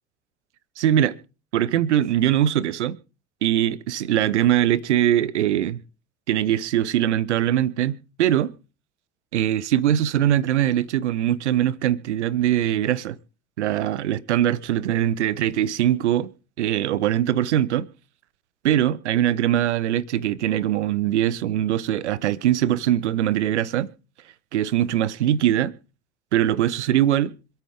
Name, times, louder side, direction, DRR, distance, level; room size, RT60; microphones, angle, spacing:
voice 1, 0.8-1.2 1.5-3.0 3.4-5.8 6.3-8.5 9.3-13.2 13.6-16.3 16.6-17.9 18.6-23.9 24.5-25.7 26.3-27.3, right 11 dB, 80° right, 0.7 m, -22 dB
26.0 x 8.8 x 3.5 m
figure-of-eight pair, 60°, 35 cm